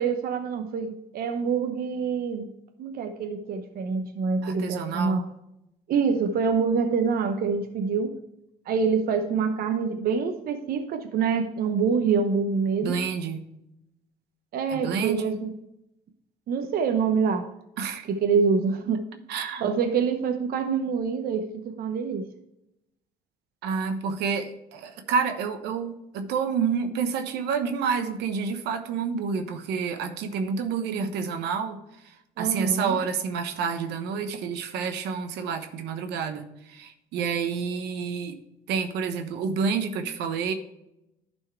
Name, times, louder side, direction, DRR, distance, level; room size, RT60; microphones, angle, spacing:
voice 1, 0.0-2.5 2.8-5.3 5.9-8.1 8.7-13.0 14.5-15.5 16.5-17.5 18.2-19.0 19.6-22.2 32.4-33.0, right 5 dB, 60° right, 6 dB, 0.8 m, -26 dB
voice 2, 4.4-5.3 12.8-13.4 14.7-15.4 17.8-18.0 19.3-19.6 23.6-31.8 32.0-38.4 38.7-40.5, right 6 dB, 85° right, 7 dB, 1.1 m, -29 dB
11.0 x 4.5 x 4.4 m, 0.86 s
cardioid pair, 110°, 17 cm